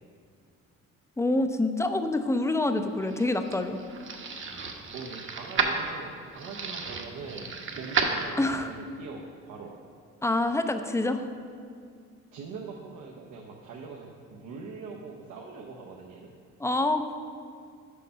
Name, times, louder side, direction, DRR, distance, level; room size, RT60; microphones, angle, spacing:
voice 1, 1.2-3.8 8.4-8.7 10.2-11.3 16.6-17.1, left 2 dB, 10° left, 8 dB, 0.4 m, -26 dB
sound 1, 2.8-8.7, right 4 dB, 40° right, 0.9 m, -33 dB
voice 2, 4.9-9.7 12.3-16.3, right 4 dB, 85° right, -2 dB, 0.9 m, -42 dB
6.6 x 5.3 x 5.5 m, 2.2 s
cardioid pair, 90°, 30 cm